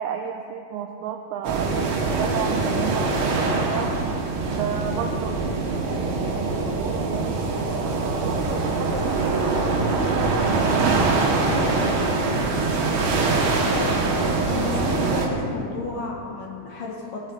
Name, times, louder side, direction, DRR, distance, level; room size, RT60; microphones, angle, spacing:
voice 1, 0.0-3.9 4.6-5.4 5.8-7.9 8.1-12.0 12.9-13.5, right 7 dB, 90° right, 4 dB, 2.2 m, -33 dB
sound 1, 1.4-15.3, right 3 dB, 70° right, 3.6 m, -23 dB
voice 2, 13.7-14.2 14.5-17.2, left 3 dB, 70° left, -2 dB, 2.2 m, -32 dB
18.0 x 13.0 x 3.3 m, 2.4 s
omnidirectional pair, 5.1 m